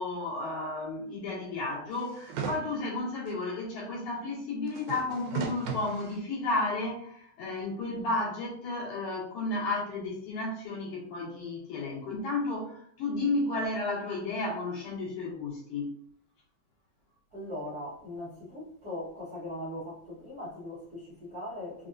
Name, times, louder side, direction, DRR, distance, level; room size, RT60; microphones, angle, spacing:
voice 1, 0.0-15.9, left 2 dB, 90° left, 2.8 m, -33 dB
sound 1, 1.9-2.6 3.3-3.4 4.7-6.2 6.9-7.0, right 6 dB, 85° right, 2.0 m, -37 dB
voice 2, 17.3-21.9, left 1 dB, 55° right, 1.1 m, -40 dB
5.6 x 2.4 x 2.4 m
omnidirectional pair, 3.4 m